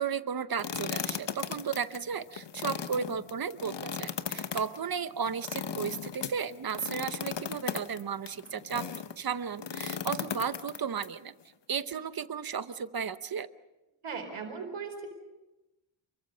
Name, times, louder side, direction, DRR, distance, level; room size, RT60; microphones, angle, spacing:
voice 1, 0.0-8.8 9.2-11.3 11.7-13.5, right 7 dB, 45° right, 13 dB, 0.9 m, -34 dB
sound 1, 0.6-9.1 9.6-11.1, left 7 dB, 60° left, 1.1 m, -37 dB
voice 2, 14.0-15.1, right 5 dB, 85° right, 4 dB, 4.5 m, -38 dB
29.0 x 23.0 x 5.6 m, 1.1 s
wide cardioid pair, 170°, 48 cm